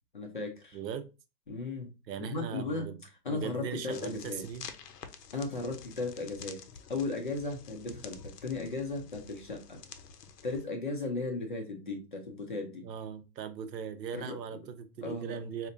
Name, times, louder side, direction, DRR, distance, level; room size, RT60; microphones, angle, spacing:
voice 1, 0.1-0.8 1.5-1.9 2.2-3.0 3.2-4.4 5.3-6.6 6.9-9.8 10.4-12.9 14.1-14.4 15.0-15.4, left 3 dB, 35° left, 0.4 m, -36 dB
voice 2, 0.7-1.1 2.1-3.0 3.3-4.7 12.8-15.7, right 7 dB, 90° right, 0.7 m, -39 dB
sound 1, 3.9-10.7, left 6 dB, 70° left, 0.7 m, -49 dB
4.1 x 2.5 x 2.5 m
hypercardioid pair, 160°, 49 cm